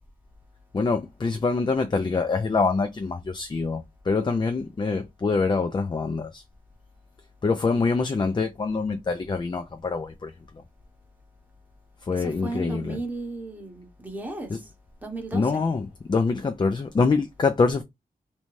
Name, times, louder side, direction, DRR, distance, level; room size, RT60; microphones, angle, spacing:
voice 1, 0.7-6.4 7.4-10.6 12.0-13.0 14.5-14.6 15.3-17.8, left 4 dB, 30° left, 0.3 m, -25 dB
voice 2, 12.2-14.5 15.0-15.4, right 2 dB, 10° right, 0.9 m, -34 dB
2.7 x 2.2 x 3.1 m
wide cardioid pair, 70°, 16 cm